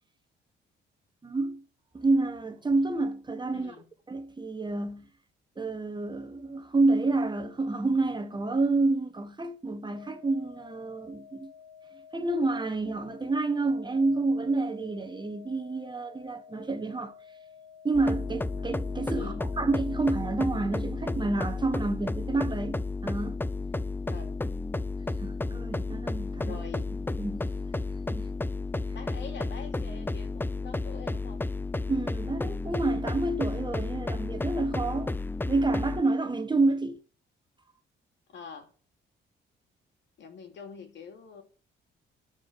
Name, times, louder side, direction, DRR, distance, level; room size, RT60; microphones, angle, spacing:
voice 1, 1.2-1.6 1.9-3.7 4.1-5.1 5.6-11.5 12.1-17.1 17.8-23.4 25.2-26.6 27.2-27.5 28.1-28.3 31.9-35.1 35.5-37.0, right 3 dB, 20° right, 1.3 m, -29 dB
voice 2, 3.5-3.9 19.1-19.4 24.1-24.4 26.4-26.9 28.9-31.5 38.3-38.7 40.2-41.4, left 5 dB, 65° left, 2.9 m, -45 dB
sound 1, 9.9-19.9, left 7 dB, 35° left, 4.7 m, -52 dB
sound 2, 17.9-36.0, left 3 dB, 10° left, 0.5 m, -32 dB
12.5 x 5.0 x 7.5 m
cardioid pair, 90°, 20 cm